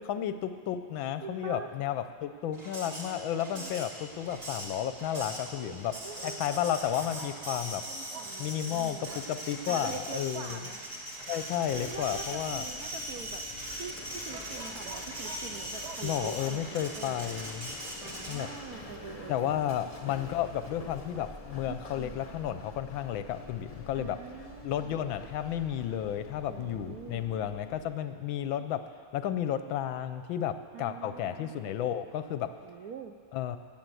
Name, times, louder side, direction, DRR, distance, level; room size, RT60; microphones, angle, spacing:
voice 1, 0.0-6.0 6.2-7.9 8.4-10.6 11.3-12.6 16.0-17.7 18.3-18.5 19.3-24.2 24.6-32.5 33.3-33.6, left 10 dB, 75° left, 10 dB, 1.3 m, -32 dB
voice 2, 1.2-1.7 2.8-3.7 5.6-6.9 7.9-9.2 9.7-10.8 11.7-13.4 13.8-17.5 18.0-19.8 21.7-22.2 23.9-24.9 26.5-27.2 30.7-31.5 32.6-33.1, right 6 dB, 80° right, 5 dB, 0.8 m, -44 dB
Printer, 2.5-18.7, equal, 35° right, 2.9 m, -40 dB
sound 1, 3.9-16.0, right 6 dB, 60° right, 1.1 m, -51 dB
Run, 11.7-27.8, left 3 dB, 45° left, 0.4 m, -47 dB
16.0 x 9.2 x 7.7 m, 2.2 s
omnidirectional pair, 2.4 m